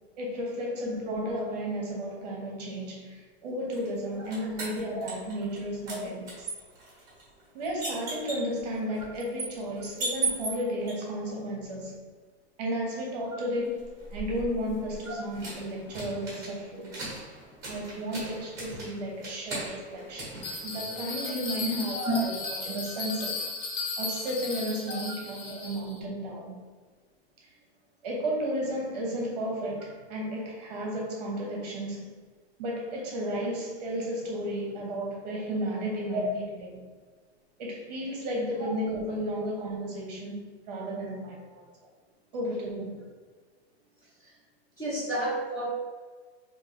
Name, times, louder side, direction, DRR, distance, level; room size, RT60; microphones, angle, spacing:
voice 1, 0.2-6.5 7.5-12.0 12.6-17.1 17.6-23.5 24.0-26.5 28.0-32.2 32.6-36.8 37.6-41.7 42.3-43.0, equal, 40° right, -1 dB, 0.9 m, -33 dB
sound 1, 3.7-5.6 5.9-10.9 13.7-21.2, right 3 dB, 10° right, 1.0 m, -38 dB
Bell, 20.4-26.0, left 3 dB, 55° left, 0.8 m, -36 dB
voice 2, 44.8-45.7, equal, 10° left, -10 dB, 0.6 m, -31 dB
3.6 x 2.8 x 3.1 m, 1.5 s
supercardioid pair, 170°, 33 cm